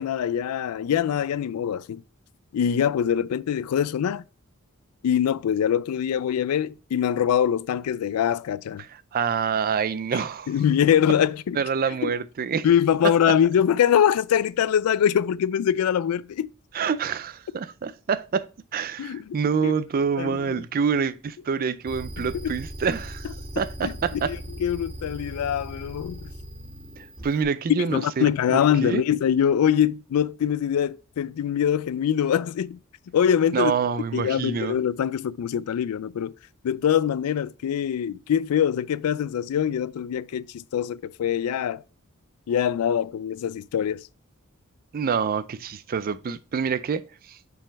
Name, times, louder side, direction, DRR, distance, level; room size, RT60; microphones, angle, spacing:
voice 1, 0.0-2.0 2.5-4.2 5.0-8.8 10.5-11.6 12.0-12.1 12.6-16.5 19.0-19.2 19.6-19.7 20.2-20.6 22.2-22.5 23.8-26.3 27.9-32.8 33.1-33.7 34.1-36.3 36.6-41.8 42.5-44.1, left 9 dB, 85° left, 0.3 m, -23 dB
voice 2, 8.8-10.5 11.5-12.7 13.0-13.4 16.7-23.3 23.6-24.3 27.0-28.3 28.8-29.0 33.5-34.8 44.9-47.4, right 6 dB, 40° right, 0.4 m, -27 dB
sound 1, 21.8-27.4, right 1 dB, 25° right, 2.0 m, -38 dB
6.4 x 4.1 x 3.9 m
head